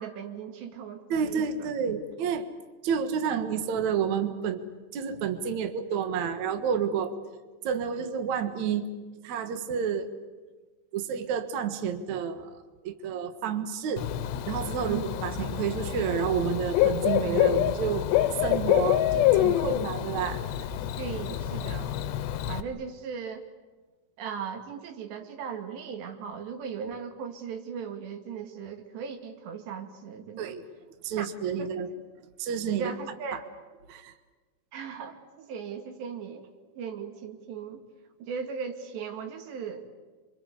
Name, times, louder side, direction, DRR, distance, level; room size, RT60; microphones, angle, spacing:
voice 1, 0.0-1.4 14.8-15.0 21.0-21.9 22.5-23.4 24.2-30.5 31.2-31.3 31.6-31.9 32.7-33.4 34.7-36.5 36.8-37.8 38.2-39.9, right 6 dB, 75° right, 5 dB, 4.3 m, -38 dB
voice 2, 1.1-2.5 2.8-4.6 4.9-7.1 7.6-8.9 9.2-10.1 10.9-14.1 14.5-18.1 18.4-20.4 30.4-30.6 31.0-31.9 32.4-32.9 33.3-33.4 33.9-34.1, right 7 dB, 55° right, 7 dB, 2.2 m, -30 dB
Bird / Cricket, 14.0-22.6, left 12 dB, 80° left, 3.2 m, -27 dB
28.5 x 25.0 x 8.2 m, 1.3 s
omnidirectional pair, 5.1 m